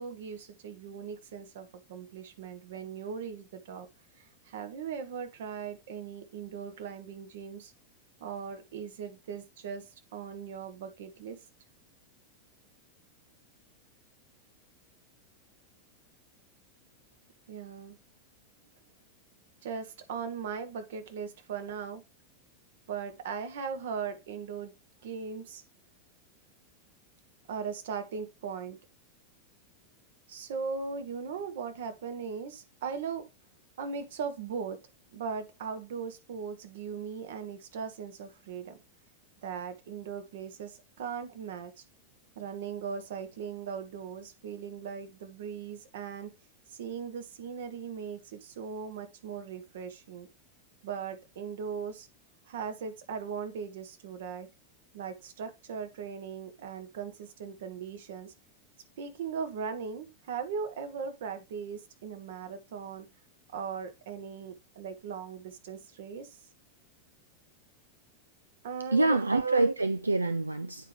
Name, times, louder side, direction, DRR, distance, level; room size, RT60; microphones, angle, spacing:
voice 1, 0.0-3.9 4.2-7.7 8.2-11.4 17.5-18.0 19.6-22.0 22.9-24.7 25.0-25.6 27.5-28.8 30.3-33.3 33.8-34.8 35.1-38.8 39.4-41.8 42.3-46.3 46.7-50.3 50.8-52.1 52.5-54.5 54.9-58.3 59.0-63.1 63.5-66.4 68.6-69.2, right 6 dB, 55° right, 1.1 m, -39 dB
voice 2, 68.9-70.9, right 2 dB, 80° right, 0.3 m, -26 dB
9.0 x 4.7 x 3.2 m
figure-of-eight pair, 90°, 0 cm